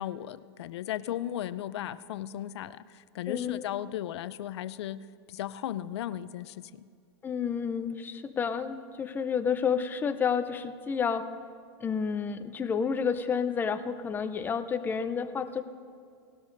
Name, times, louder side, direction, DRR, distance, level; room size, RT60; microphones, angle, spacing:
voice 1, 0.0-6.8, left 12 dB, 75° left, 16 dB, 0.5 m, -36 dB
voice 2, 3.3-3.6 7.2-11.3 11.8-15.6, left 6 dB, 15° left, 9 dB, 0.5 m, -30 dB
19.0 x 12.5 x 2.6 m, 2.3 s
supercardioid pair, 145°, 14 cm